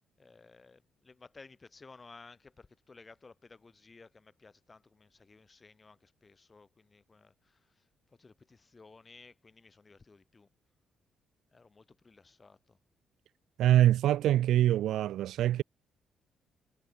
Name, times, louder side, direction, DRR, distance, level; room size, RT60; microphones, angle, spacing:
voice 1, 0.2-10.5 11.5-12.8, left 4 dB, 30° left, 5.6 m, -56 dB
voice 2, 13.6-15.6, right 12 dB, 80° right, 0.5 m, -24 dB
cardioid pair, 90°, 0 cm